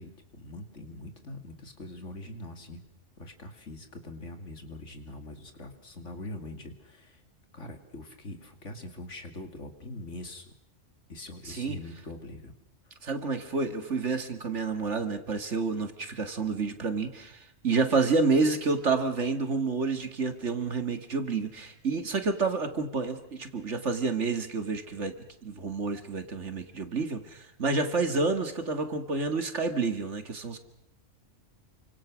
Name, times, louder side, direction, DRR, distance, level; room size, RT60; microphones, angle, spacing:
voice 1, 0.0-2.8 3.2-7.2 7.5-10.5 11.1-12.5, left 2 dB, 70° left, 6 dB, 3.0 m, -43 dB
voice 2, 11.5-11.8 13.0-25.2 25.4-30.6, right 4 dB, 70° right, 8 dB, 2.3 m, -29 dB
28.5 x 25.5 x 6.3 m, 0.78 s
omnidirectional pair, 1.3 m